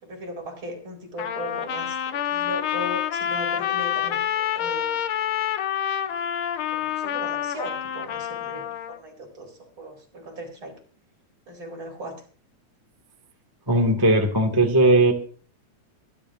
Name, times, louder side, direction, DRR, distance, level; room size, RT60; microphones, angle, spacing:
voice 1, 0.0-5.0 6.7-10.8 11.5-12.2, equal, 45° right, 2 dB, 4.7 m, -38 dB
Trumpet, 1.2-9.0, left 10 dB, 70° left, 1.3 m, -27 dB
voice 2, 13.7-15.1, right 2 dB, 10° right, 2 dB, 1.1 m, -18 dB
25.0 x 12.0 x 2.5 m, 0.41 s
omnidirectional pair, 3.3 m